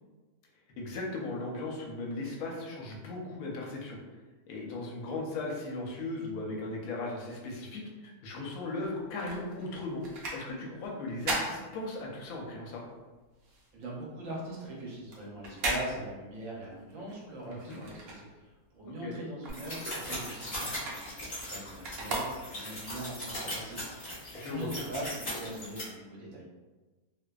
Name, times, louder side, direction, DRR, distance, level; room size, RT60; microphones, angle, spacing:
voice 1, 0.8-4.0 4.5-10.0 10.3-12.8 17.4-17.8 18.8-19.2 24.4-24.7, left 2 dB, 70° left, -1 dB, 0.9 m, -37 dB
sound 1, 8.7-12.4 12.8-18.8 19.1-22.9 23.4-23.5, right 2 dB, 85° right, 0.5 m, -38 dB
voice 2, 13.7-26.4, right 1 dB, 65° right, -4 dB, 0.9 m, -42 dB
sound 2, 19.5-25.8, left 1 dB, 35° left, 0.7 m, -39 dB
2.6 x 2.1 x 2.2 m, 1.2 s
omnidirectional pair, 1.7 m